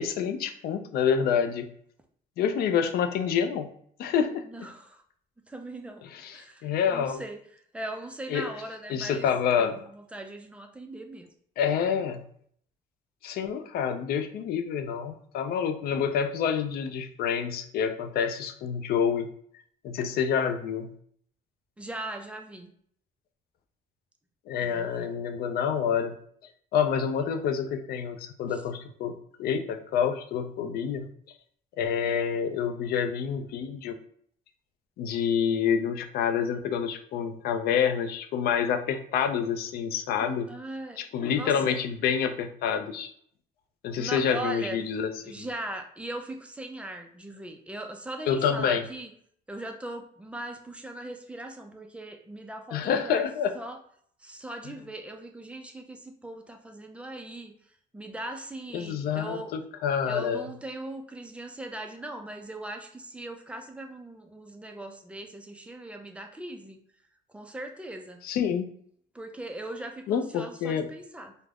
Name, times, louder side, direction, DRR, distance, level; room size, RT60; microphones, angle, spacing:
voice 1, 0.0-1.7 2.4-3.7 4.0-4.4 6.1-7.2 8.3-8.5 8.9-9.7 11.6-12.2 13.2-19.3 19.8-20.9 24.5-26.2 26.7-31.1 31.8-34.0 35.0-40.5 41.0-43.1 43.8-45.5 48.3-48.8 52.7-53.5 58.7-60.5 68.2-68.7 70.1-70.9, left 7 dB, 65° left, 8 dB, 0.4 m, -27 dB
voice 2, 4.4-5.0 5.5-6.0 6.3-11.3 21.8-22.7 24.6-25.1 28.5-28.6 40.2-41.0 41.3-41.8 44.0-44.8 45.2-49.1 49.5-53.3 53.5-53.8 54.2-57.5 57.9-59.5 60.1-66.8 67.3-68.2 69.1-71.4, right 1 dB, 5° right, 4 dB, 0.4 m, -40 dB
2.3 x 2.1 x 3.3 m, 0.62 s
cardioid pair, 110°, 17 cm